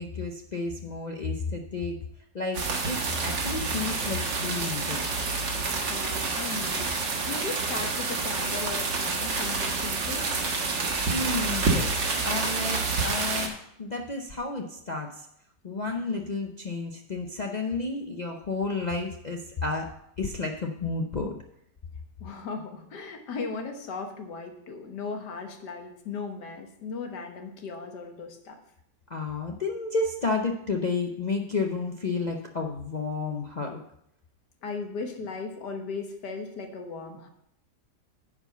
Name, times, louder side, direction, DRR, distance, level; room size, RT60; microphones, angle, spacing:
voice 1, 0.0-2.0 2.3-5.0 11.1-15.2 15.6-19.9 20.2-21.3 29.1-33.8, left 3 dB, 55° left, 1 dB, 0.4 m, -31 dB
sound 1, 2.5-13.5, right 3 dB, 85° right, 2.1 m, -28 dB
voice 2, 5.9-10.3 22.2-28.6 34.6-37.3, left 4 dB, 70° left, 4 dB, 1.8 m, -37 dB
9.7 x 4.9 x 6.7 m, 0.75 s
omnidirectional pair, 1.9 m